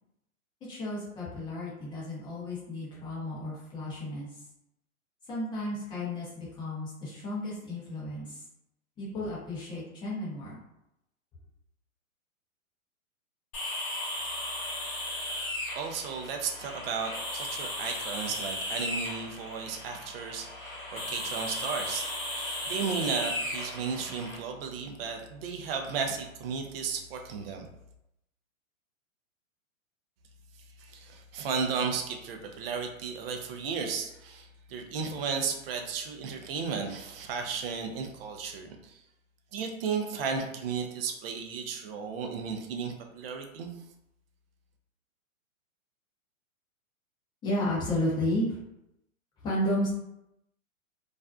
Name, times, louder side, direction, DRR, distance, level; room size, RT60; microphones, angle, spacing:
voice 1, 0.7-4.3 5.3-8.4 9.0-10.6 47.4-48.6 49.4-49.9, left 1 dB, 10° left, -7 dB, 0.5 m, -32 dB
sound 1, 13.5-24.4, left 1 dB, 45° left, 0.9 m, -36 dB
voice 2, 15.8-22.1 22.4-27.7 30.8-39.0 39.5-43.7, right 5 dB, 45° right, 3 dB, 0.4 m, -34 dB
2.4 x 2.1 x 2.4 m, 0.84 s
hypercardioid pair, 125°, 42 cm